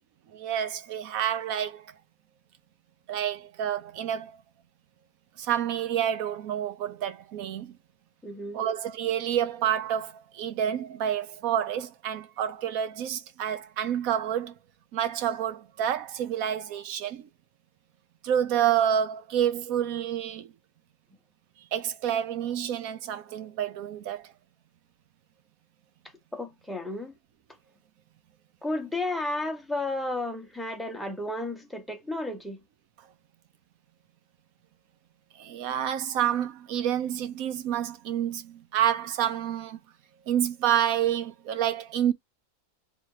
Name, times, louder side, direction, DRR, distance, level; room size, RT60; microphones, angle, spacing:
voice 1, 0.3-1.9 3.1-4.4 5.4-7.8 8.5-14.5 14.9-17.3 18.2-20.5 21.6-24.3 35.4-39.8 40.3-42.1, right 10 dB, 70° right, 1.1 m, -28 dB
voice 2, 8.2-8.6 26.3-27.1 28.6-32.6, left 2 dB, ahead, 0.6 m, -32 dB
3.4 x 2.8 x 4.6 m
omnidirectional pair, 1.6 m